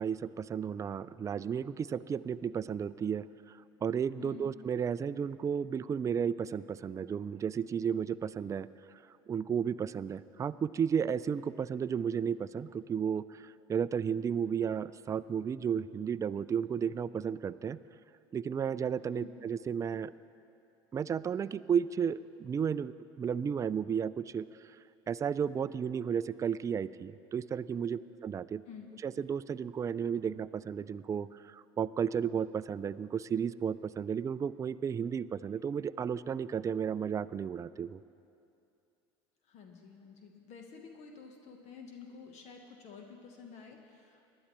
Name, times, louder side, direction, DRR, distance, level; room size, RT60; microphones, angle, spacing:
voice 1, 0.0-8.7 9.3-17.8 18.3-20.1 20.9-24.5 25.1-28.6 29.0-38.0, right 7 dB, 25° right, 15 dB, 0.3 m, -33 dB
voice 2, 4.2-4.5 19.1-19.3 28.7-28.9 39.4-44.2, left 6 dB, 55° left, 3 dB, 1.2 m, -50 dB
19.5 x 11.0 x 3.1 m, 2.6 s
hypercardioid pair, 75°, 13 cm